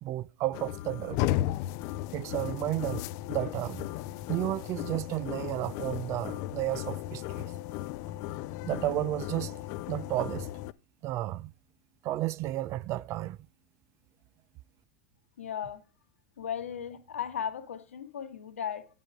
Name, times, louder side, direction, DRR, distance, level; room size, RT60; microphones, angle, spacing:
voice 1, 0.0-1.2 2.1-3.9 4.3-7.4 8.6-9.6 9.9-10.5 11.0-11.5 12.0-13.4, right 15 dB, 45° right, 0.5 m, -32 dB
sound 1, 0.5-10.7, left 14 dB, 50° left, 0.4 m, -35 dB
voice 2, 15.4-15.8 16.4-18.9, left 8 dB, 85° left, 1.3 m, -36 dB
8.9 x 5.2 x 4.9 m
hypercardioid pair, 105°, 7 cm